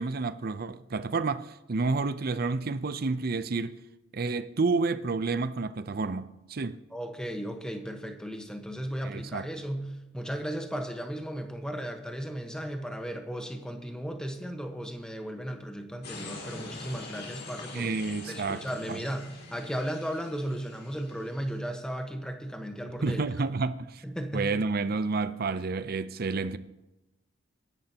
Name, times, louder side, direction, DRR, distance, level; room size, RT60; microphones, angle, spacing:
voice 1, 0.0-3.8 4.1-6.8 9.0-9.5 17.7-19.0 23.0-24.0 24.3-26.6, right 4 dB, 50° right, 0.6 m, -30 dB
voice 2, 6.9-17.9 18.3-23.2 24.0-24.5, equal, 5° left, 1.2 m, -35 dB
sound 1, 16.0-21.6, left 3 dB, 55° left, 2.8 m, -44 dB
22.5 x 11.0 x 2.9 m
head